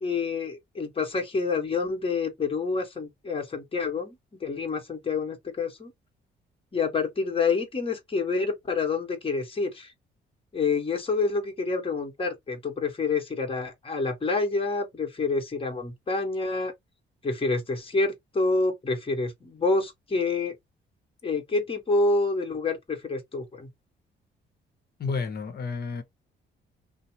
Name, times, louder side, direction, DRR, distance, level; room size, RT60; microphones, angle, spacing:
voice 1, 0.0-5.9 6.7-9.9 10.5-16.7 17.2-20.5 21.2-23.7, left 3 dB, 25° left, 1.2 m, -28 dB
voice 2, 25.0-26.0, left 4 dB, 55° left, 0.9 m, -31 dB
2.7 x 2.1 x 2.8 m
cardioid pair, 90°, 20 cm